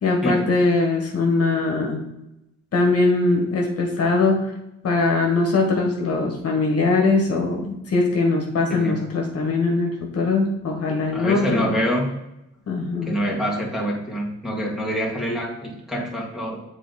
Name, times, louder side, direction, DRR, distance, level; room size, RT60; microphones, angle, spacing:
voice 1, 0.0-2.0 2.7-4.5 4.8-11.7 12.7-13.1, left 3 dB, 50° left, 1 dB, 1.4 m, -21 dB
voice 2, 11.1-12.1 13.0-16.6, equal, ahead, -4 dB, 2.0 m, -26 dB
7.3 x 4.0 x 4.1 m, 0.89 s
cardioid pair, 90°, 30 cm